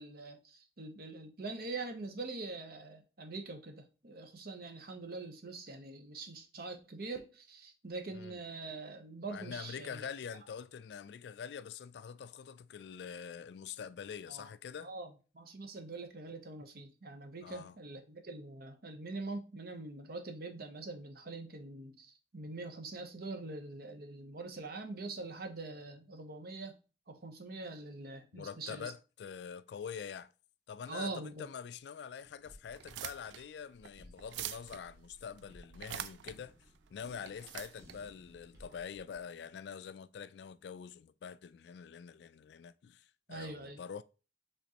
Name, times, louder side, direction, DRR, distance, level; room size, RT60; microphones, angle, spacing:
voice 1, 0.0-10.1 14.3-14.5 14.8-15.1 15.3-26.7 27.1-28.9 30.9-31.5 43.3-43.8, right 3 dB, 55° right, 0.8 m, -44 dB
voice 2, 8.1-8.4 9.3-14.9 17.4-17.8 28.3-30.3 30.7-36.6 36.9-44.0, left 7 dB, 65° left, 0.3 m, -45 dB
sound 1, 32.2-33.6 34.0-39.1, equal, 15° right, 1.6 m, -59 dB
sound 2, 32.7-39.2, right 11 dB, 75° right, 0.3 m, -46 dB
5.1 x 3.6 x 2.9 m
head